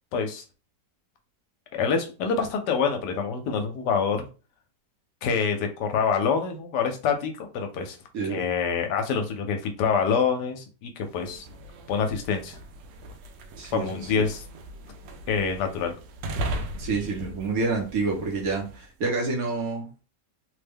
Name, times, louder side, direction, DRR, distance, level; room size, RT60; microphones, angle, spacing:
voice 1, 0.1-0.4 1.7-4.2 5.2-8.0 8.2-11.5 11.9-12.6 13.7-14.4 15.3-15.9, left 6 dB, 75° left, 5 dB, 1.2 m, -26 dB
sound 1, 11.1-18.9, right 1 dB, 80° right, 1.2 m, -38 dB
voice 2, 13.6-14.2 16.8-19.9, right 3 dB, 60° right, 0 dB, 1.1 m, -28 dB
3.2 x 2.1 x 3.4 m, 0.33 s
omnidirectional pair, 1.9 m